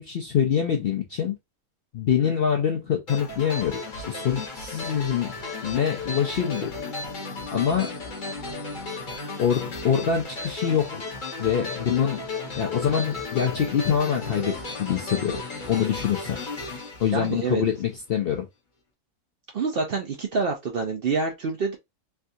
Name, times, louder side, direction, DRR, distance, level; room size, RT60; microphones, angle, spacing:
voice 1, 0.0-1.4 1.9-3.8 4.1-5.4 5.6-6.7 7.5-8.0 9.4-11.0 11.4-12.3 12.6-15.4 15.7-16.4 17.0-18.5, left 8 dB, 65° left, 0.6 m, -25 dB
sound 1, 3.1-17.9, left 3 dB, 40° left, 0.9 m, -35 dB
voice 2, 17.1-17.6 19.5-21.8, right 4 dB, 60° right, 0.6 m, -27 dB
3.4 x 2.3 x 2.6 m
omnidirectional pair, 1.5 m